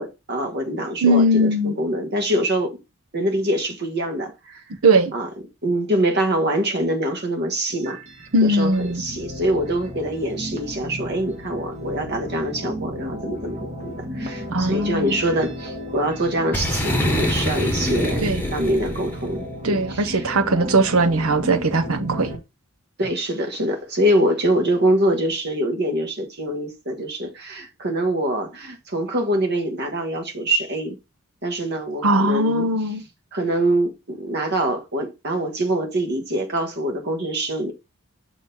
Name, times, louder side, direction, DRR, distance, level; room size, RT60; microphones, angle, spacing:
voice 1, 0.0-2.8 3.1-4.6 5.1-5.3 5.6-8.0 8.4-18.3 18.5-20.3 20.6-20.8 23.0-31.0 31.4-32.7 33.3-37.7, right 1 dB, 50° right, 1.5 m, -24 dB
voice 2, 1.0-1.7 4.8-5.1 8.3-9.0 14.5-15.2 18.2-18.4 19.6-22.3 32.0-33.0, right 1 dB, 80° right, 0.8 m, -19 dB
sound 1, 7.7-22.4, equal, 35° right, 1.3 m, -34 dB
Boom, 16.5-19.3, left 1 dB, 10° left, 1.1 m, -24 dB
6.5 x 3.1 x 5.4 m
head